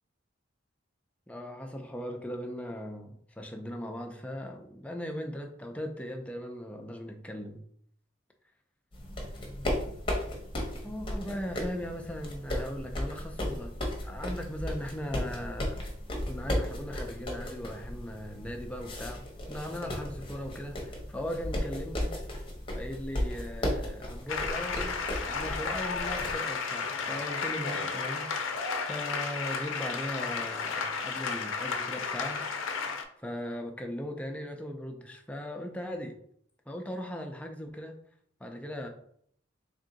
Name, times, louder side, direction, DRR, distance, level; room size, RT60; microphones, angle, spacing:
voice 1, 1.3-7.7 10.8-15.8 16.3-22.2 22.7-28.3 28.8-32.4 33.2-36.2 36.7-38.0 38.4-38.9, equal, 5° left, 3 dB, 0.4 m, -38 dB
sound 1, 8.9-26.3, left 1 dB, 25° left, 0.8 m, -35 dB
sound 2, 24.3-33.0, left 5 dB, 75° left, 0.5 m, -33 dB
3.5 x 2.6 x 3.9 m, 0.66 s
head